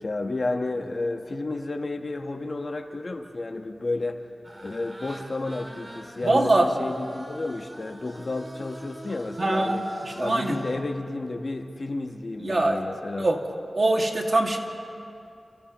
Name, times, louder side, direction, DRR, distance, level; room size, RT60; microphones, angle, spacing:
voice 1, 0.0-4.3 4.6-9.8 10.2-13.3, left 2 dB, 55° left, 5 dB, 1.3 m, -31 dB
sound 1, 4.4-10.8, right 1 dB, 30° right, 2.2 m, -43 dB
voice 2, 6.2-6.7 9.4-10.6 12.4-12.8 13.2-13.4 13.7-14.6, right 2 dB, 55° right, 1 dB, 2.2 m, -23 dB
29.5 x 29.0 x 3.1 m, 2.6 s
wide cardioid pair, 80°, 0 cm